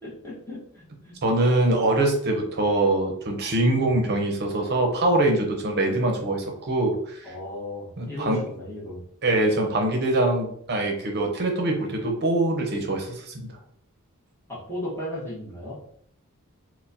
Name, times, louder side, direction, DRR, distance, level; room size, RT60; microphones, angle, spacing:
voice 1, 0.0-1.2 3.8-4.0 7.2-9.0 14.5-15.8, left 1 dB, 10° left, -7 dB, 1.2 m, -36 dB
voice 2, 1.2-7.2 8.0-8.4 9.2-13.5, right 2 dB, 50° right, 2 dB, 0.8 m, -23 dB
4.3 x 2.2 x 2.7 m, 0.65 s
head